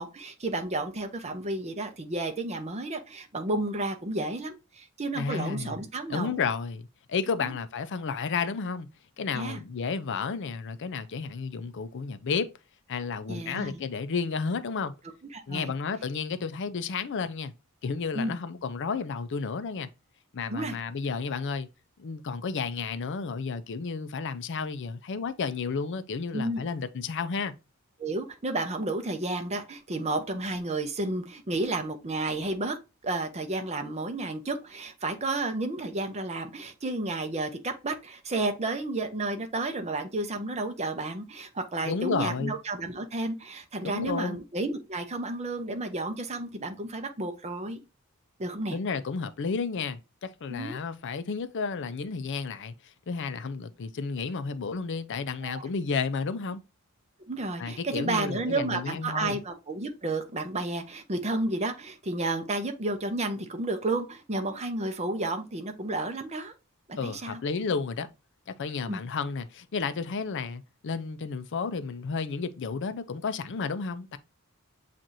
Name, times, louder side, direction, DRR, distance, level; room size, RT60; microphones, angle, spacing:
voice 1, 0.0-6.4 7.4-7.5 9.3-9.6 13.3-13.8 15.3-15.7 18.1-18.4 20.5-20.8 26.3-26.6 28.0-32.8 33.0-47.8 48.4-48.8 50.5-50.8 55.4-55.6 57.3-66.5 66.9-67.4 68.9-69.0, right 2 dB, 30° right, 0.7 m, -32 dB
voice 2, 5.1-5.8 6.1-8.9 9.2-12.5 12.9-14.9 15.5-17.5 17.8-19.9 20.3-21.7 22.0-27.5 41.8-42.6 43.8-44.4 48.7-56.6 57.6-59.4 67.0-68.1 68.5-74.2, left 5 dB, 55° left, 0.5 m, -32 dB
7.4 x 2.5 x 2.6 m
head